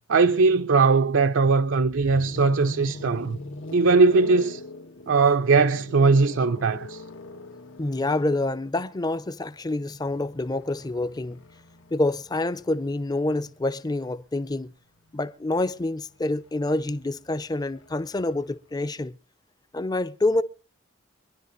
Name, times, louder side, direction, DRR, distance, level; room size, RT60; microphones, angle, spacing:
voice 1, 0.1-3.4 3.7-4.6 5.1-7.0, right 4 dB, 80° right, 0.6 m, -20 dB
sound 1, 1.8-13.7 15.0-18.6, left 2 dB, 85° left, 1.4 m, -43 dB
voice 2, 7.8-11.4 11.9-14.7 15.1-19.1 19.7-20.4, left 2 dB, 20° left, 0.6 m, -27 dB
24.5 x 11.0 x 2.6 m
head